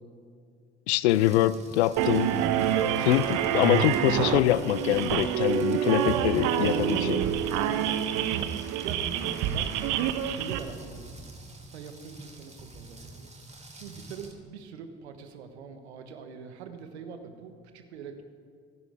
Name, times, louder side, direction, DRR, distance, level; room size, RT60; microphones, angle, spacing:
voice 1, 0.9-2.4 3.1-7.3, left 14 dB, 85° left, 0.5 m, -24 dB
Rain, 1.1-14.3, right 2 dB, 20° right, 2.7 m, -47 dB
sound 1, 2.0-10.6, right 10 dB, 65° right, 1.0 m, -27 dB
voice 2, 8.8-9.8 10.3-11.1 11.6-13.3 13.7-18.2, right 6 dB, 85° right, 1.3 m, -43 dB
26.0 x 11.0 x 3.6 m
hypercardioid pair, 55°, 32 cm